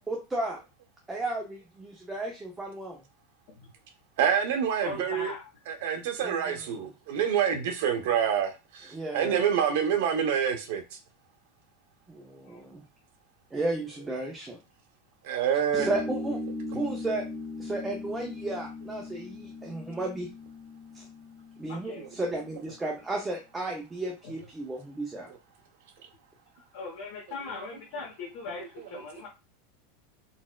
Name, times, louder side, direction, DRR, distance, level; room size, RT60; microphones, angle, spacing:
voice 1, 0.1-0.6 1.1-3.0 6.2-6.9 8.9-9.5 12.1-12.8 13.5-14.6 15.7-16.4 16.7-17.2 17.6-20.3 20.9-21.0 21.6-25.3, right 2 dB, 10° right, 0.4 m, -34 dB
voice 2, 4.2-5.3 5.7-10.8 15.2-15.9 22.0-22.1, right 8 dB, 60° right, 0.7 m, -27 dB
voice 3, 4.8-5.4 12.4-12.6 21.7-22.1 24.2-24.3 26.6-29.3, left 3 dB, 50° left, 0.9 m, -39 dB
sound 1, 15.7-22.7, left 2 dB, 10° left, 1.0 m, -39 dB
4.0 x 2.3 x 2.2 m
supercardioid pair, 175°, 0 cm